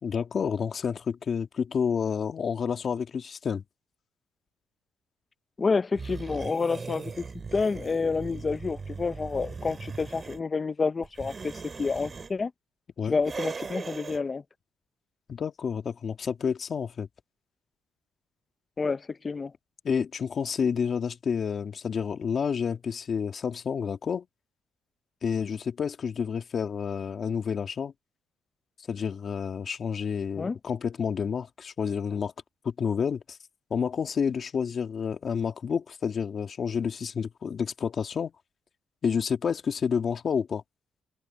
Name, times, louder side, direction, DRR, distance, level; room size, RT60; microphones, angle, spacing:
voice 1, 0.0-3.6 13.0-13.2 15.3-17.1 19.8-24.3 25.2-27.9 28.9-32.3 32.6-33.4 33.7-38.3 39.0-40.6, left 6 dB, 45° left, 2.1 m, -29 dB
voice 2, 5.6-7.3 7.5-11.5 11.8-12.5 13.1-14.4 18.8-19.5 30.4-30.6, left 4 dB, 30° left, 0.5 m, -29 dB
sound 1, 5.9-10.4 11.0-12.3 13.2-14.2, right 4 dB, 35° right, 5.6 m, -39 dB
cardioid pair, 80°, 0 cm